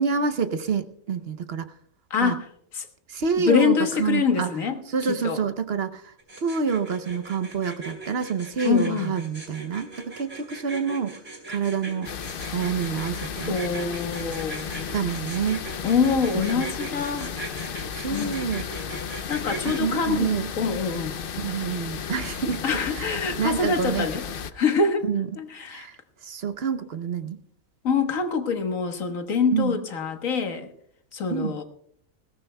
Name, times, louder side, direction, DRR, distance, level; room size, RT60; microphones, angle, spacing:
voice 1, 0.0-1.7 2.2-2.4 3.1-4.5 4.9-11.2 11.5-12.1 12.5-13.6 14.9-15.6 16.5-16.6 17.9-18.6 19.6-20.5 21.4-22.6 22.9-24.1 25.0-25.3 25.7-27.4 29.5-29.8 31.3-31.6, right 6 dB, 55° right, 9 dB, 0.9 m, -27 dB
voice 2, 2.1-2.4 2.7-2.9 3.4-4.8 5.1-5.4 8.6-9.1 13.5-14.7 15.8-17.3 18.1-18.3 19.3-20.3 20.6-21.2 22.6-24.2 24.5-25.0 25.4-25.9 27.8-30.7 31.1-31.6, left 5 dB, 85° left, 6 dB, 1.7 m, -25 dB
sound 1, 6.2-19.8, right 3 dB, 25° right, 4.0 m, -39 dB
sound 2, 12.0-24.5, left 7 dB, 55° left, 0.7 m, -34 dB
20.5 x 17.0 x 2.2 m, 0.67 s
omnidirectional pair, 1.4 m